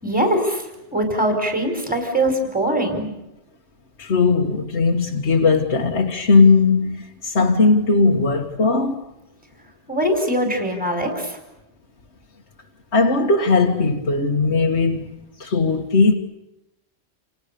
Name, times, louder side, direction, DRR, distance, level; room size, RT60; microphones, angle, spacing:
voice 1, 0.0-3.1 9.9-11.4, right 1 dB, 5° right, 4.9 m, -22 dB
voice 2, 4.0-9.0 12.9-15.1 15.4-16.1, left 4 dB, 80° left, 2.0 m, -18 dB
29.5 x 28.5 x 6.9 m
omnidirectional pair, 1.1 m